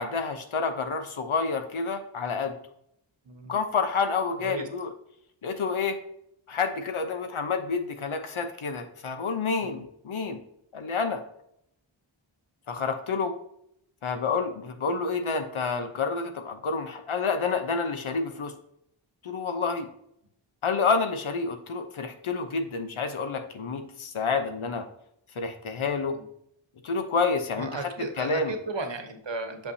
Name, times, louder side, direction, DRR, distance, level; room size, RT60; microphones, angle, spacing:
voice 1, 0.0-2.6 3.5-4.9 5.4-6.0 6.5-10.4 10.7-11.2 12.7-13.3 14.0-18.5 19.2-19.9 20.6-24.9 25.4-26.1 26.8-28.5, left 4 dB, 75° left, 7 dB, 0.9 m, -29 dB
voice 2, 3.3-3.6 4.4-4.7 9.6-9.8 26.1-26.2 27.6-29.7, right 3 dB, 60° right, 6 dB, 1.1 m, -35 dB
6.7 x 5.5 x 2.7 m, 0.74 s
wide cardioid pair, 80°, 49 cm